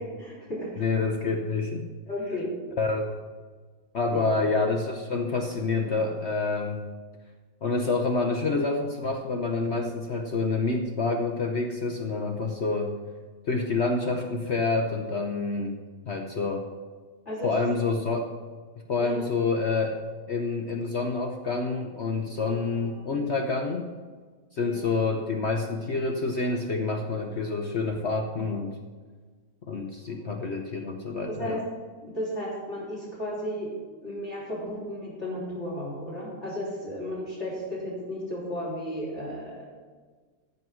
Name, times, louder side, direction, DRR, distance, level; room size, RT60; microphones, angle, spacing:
voice 1, 0.2-0.7 2.1-2.5 4.1-4.3 12.4-12.5 17.3-17.7 19.0-19.3 22.5-23.1 24.6-24.8 30.1-30.4 31.3-31.6 32.0-33.7 34.0-39.7, equal, 30° left, -6 dB, 3.8 m, -34 dB
voice 2, 0.8-1.9 2.8-3.0 3.9-6.8 7.6-13.0 13.5-15.8 16.1-16.7 17.4-18.3 18.9-20.0 20.3-23.9 24.5-28.7 29.7-31.6, left 3 dB, 65° left, 3 dB, 0.6 m, -27 dB
14.5 x 5.4 x 6.3 m, 1.4 s
omnidirectional pair, 2.3 m